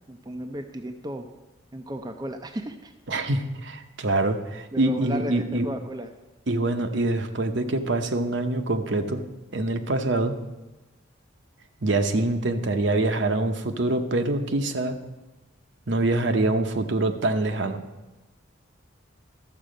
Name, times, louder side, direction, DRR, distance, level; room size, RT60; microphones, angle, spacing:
voice 1, 0.1-1.3 1.7-2.9 4.7-6.1, right 1 dB, 20° right, 5 dB, 0.4 m, -34 dB
voice 2, 3.1-5.7 6.5-9.2 9.5-10.4 11.8-15.0 15.9-17.8, right 2 dB, 60° right, 7 dB, 0.8 m, -25 dB
12.5 x 7.5 x 5.1 m, 1.1 s
head